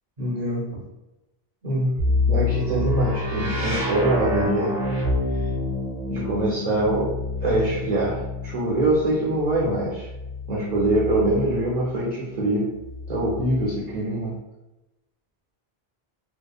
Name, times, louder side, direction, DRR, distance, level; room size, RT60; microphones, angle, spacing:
voice 1, 0.2-0.8 1.6-2.0 2.2-4.8 6.1-7.1 7.4-10.1 10.5-12.7 13.1-14.4, right 1 dB, 50° right, -6 dB, 0.6 m, -24 dB
sound 1, 2.0-11.8 12.8-13.8, left 2 dB, 80° right, 0.9 m, -28 dB
2.7 x 2.1 x 2.3 m, 0.98 s
omnidirectional pair, 1.0 m